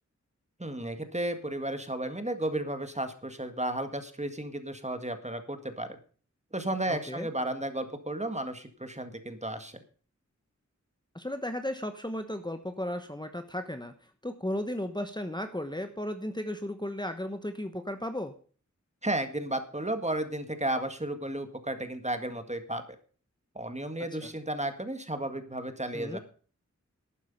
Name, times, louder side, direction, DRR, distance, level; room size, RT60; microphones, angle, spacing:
voice 1, 0.6-6.0 6.5-9.8 19.0-22.8 23.6-26.2, right 1 dB, 25° right, 8 dB, 1.8 m, -33 dB
voice 2, 6.9-7.3 11.1-18.3 24.2-24.3 25.9-26.2, left 1 dB, 15° left, 7 dB, 1.1 m, -35 dB
12.0 x 9.5 x 5.4 m, 0.41 s
wide cardioid pair, 50°, 29 cm